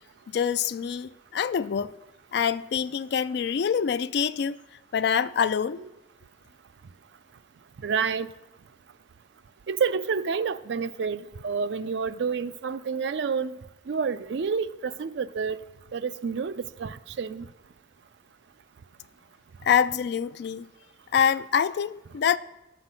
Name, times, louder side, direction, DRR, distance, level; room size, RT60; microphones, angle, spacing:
voice 1, 0.3-1.9 2.3-4.6 4.9-5.8 19.6-20.7 21.1-22.4, left 7 dB, 55° left, 0.3 m, -25 dB
voice 2, 7.8-8.3 9.7-13.6 13.9-15.6 15.9-17.5, right 5 dB, 65° right, 0.4 m, -29 dB
9.5 x 5.8 x 7.5 m
head